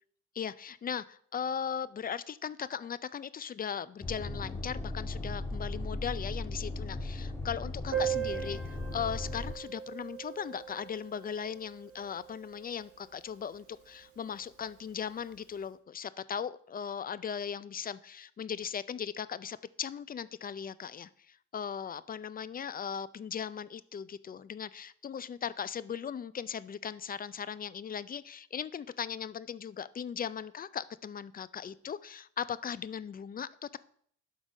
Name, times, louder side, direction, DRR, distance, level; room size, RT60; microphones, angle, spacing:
voice 1, 0.4-8.6 8.9-33.8, left 7 dB, 30° left, 17 dB, 0.4 m, -38 dB
sound 1, 4.0-9.5, left 2 dB, 10° left, 1.5 m, -37 dB
Piano, 7.9-13.3 13.5-13.6 13.8-14.0 14.3-14.4 15.2-15.4, right 10 dB, 50° right, 1.8 m, -39 dB
11.5 x 4.0 x 4.9 m, 0.62 s
cardioid pair, 90°, 30 cm